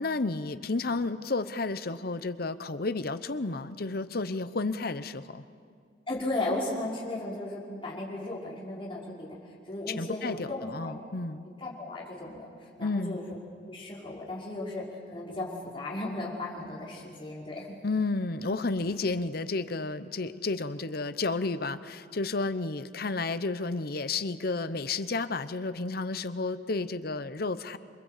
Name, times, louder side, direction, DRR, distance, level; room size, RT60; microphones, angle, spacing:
voice 1, 0.0-5.4 9.9-11.4 12.8-13.2 17.8-27.8, left 3 dB, 55° left, 13 dB, 0.9 m, -31 dB
voice 2, 6.1-10.9 11.6-13.4 13.7-17.8, left 2 dB, 30° left, -5 dB, 5.7 m, -36 dB
27.5 x 24.0 x 8.4 m, 2.2 s
head